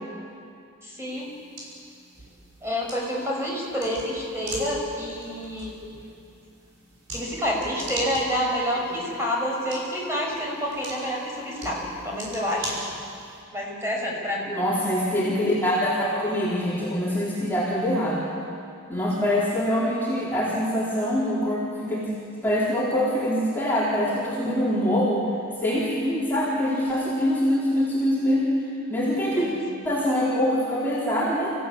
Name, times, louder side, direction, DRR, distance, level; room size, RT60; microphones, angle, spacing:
voice 1, 0.8-1.3 2.6-5.7 7.1-12.8 13.5-14.5 29.3-29.6, equal, 10° right, -3 dB, 5.8 m, -28 dB
sound 1, 1.0-13.4, right 1 dB, 55° right, 6.7 m, -40 dB
voice 2, 14.5-18.2 18.9-22.1 22.4-25.2 25.6-28.5 28.9-29.5 29.8-31.5, equal, 10° left, -8 dB, 4.2 m, -24 dB
29.5 x 15.5 x 8.6 m, 2.5 s
head